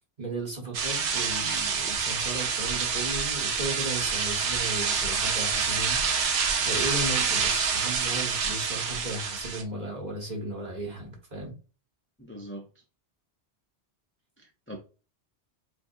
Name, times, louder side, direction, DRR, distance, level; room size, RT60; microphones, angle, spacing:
voice 1, 0.2-6.0 6.6-11.5, right 2 dB, 40° right, 1.6 m, -35 dB
sound 1, 0.7-9.6, right 6 dB, 85° right, 1.1 m, -27 dB
voice 2, 12.2-12.7 14.4-14.8, equal, 15° left, 0.6 m, -41 dB
7.4 x 2.7 x 2.7 m
omnidirectional pair, 1.1 m